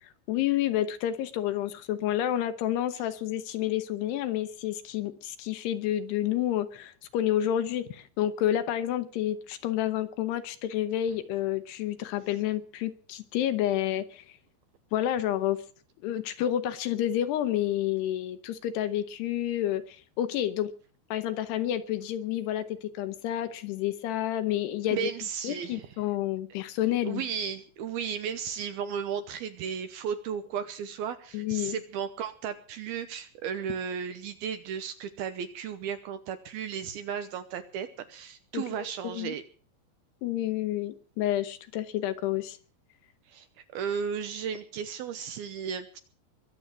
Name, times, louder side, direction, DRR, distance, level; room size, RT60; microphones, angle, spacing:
voice 1, 0.0-14.4 14.9-15.6 16.0-20.7 21.1-25.1 25.4-27.2 31.3-31.8 38.5-39.4 40.2-42.6, left 12 dB, 75° left, 2.8 m, -29 dB
voice 2, 24.9-25.9 27.0-39.4 43.3-46.0, right 7 dB, 75° right, 2.4 m, -35 dB
23.0 x 7.8 x 7.3 m
omnidirectional pair, 5.2 m